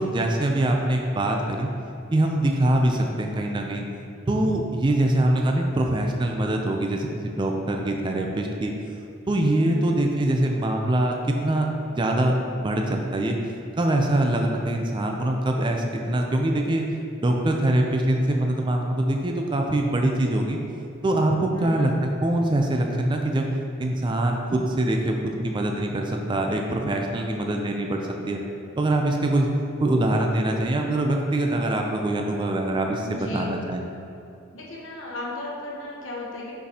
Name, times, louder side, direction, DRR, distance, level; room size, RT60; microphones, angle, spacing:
voice 1, 0.0-1.7 2.1-3.9 4.3-8.7 9.3-13.4 13.8-16.9 17.2-20.6 21.0-23.5 23.8-28.4 28.8-29.5 29.8-33.8, right 1 dB, 25° right, 2 dB, 0.4 m, -23 dB
voice 2, 9.6-10.0 21.6-21.9 33.0-33.5 34.5-36.5, left 1 dB, 65° left, -3 dB, 1.0 m, -35 dB
6.0 x 5.9 x 2.8 m, 2.8 s
head